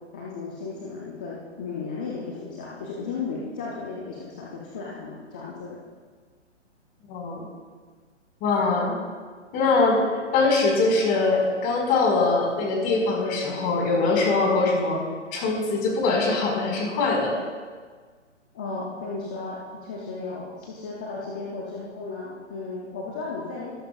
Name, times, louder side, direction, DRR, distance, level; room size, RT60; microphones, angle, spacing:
voice 1, 0.1-5.8 18.5-23.7, left 4 dB, 10° left, -4 dB, 0.3 m, -35 dB
voice 2, 7.1-7.5 8.4-9.0 9.5-10.0 10.3-15.0 15.3-17.3, left 3 dB, 25° left, -1 dB, 4.7 m, -22 dB
24.0 x 13.5 x 2.4 m, 1.5 s
figure-of-eight pair, 130°, 36 cm